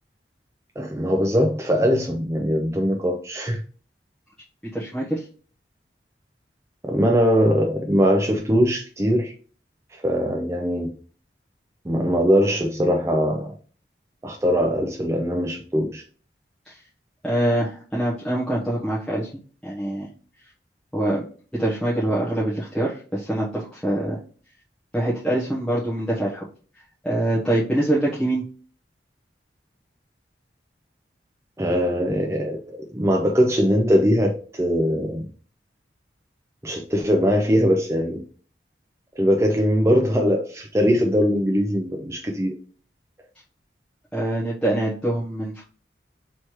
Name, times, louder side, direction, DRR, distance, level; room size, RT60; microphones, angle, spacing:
voice 1, 0.8-3.6 6.8-9.3 10.0-10.9 11.8-13.5 14.2-16.0 31.6-35.3 36.6-38.2 39.2-42.5, equal, 15° right, 1 dB, 0.5 m, -21 dB
voice 2, 4.7-5.2 16.6-16.8 17.2-19.3 19.6-20.1 20.9-21.2 21.5-24.2 24.9-26.4 27.0-28.4 44.1-45.6, right 1 dB, 5° left, -9 dB, 1.0 m, -24 dB
3.3 x 3.1 x 4.4 m, 0.41 s
head